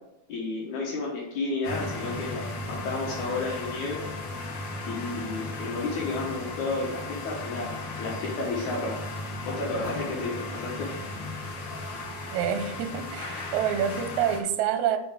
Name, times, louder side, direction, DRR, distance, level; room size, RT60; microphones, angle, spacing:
voice 1, 0.3-4.0 4.9-9.0 9.5-10.9, left 3 dB, 80° left, -3 dB, 2.7 m, -32 dB
sound 1, 1.6-14.4, left 2 dB, 60° left, 1.2 m, -36 dB
voice 2, 12.3-15.0, right 9 dB, 80° right, 9 dB, 2.0 m, -27 dB
7.0 x 5.5 x 4.9 m, 0.86 s
omnidirectional pair, 3.5 m